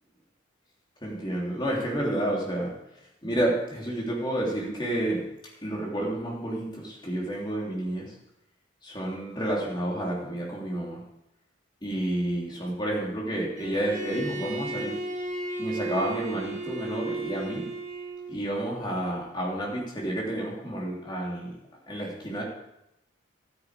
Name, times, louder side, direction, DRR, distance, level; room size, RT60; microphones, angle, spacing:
voice 1, 1.0-2.7 3.2-5.2 5.6-8.1 8.8-11.0 11.8-15.0 15.6-17.7 18.3-21.5 21.9-22.4, right 1 dB, 20° left, -3 dB, 3.2 m, -30 dB
Bowed string instrument, 13.6-18.4, right 2 dB, 35° right, 2.1 m, -34 dB
12.5 x 9.4 x 5.0 m, 0.85 s
head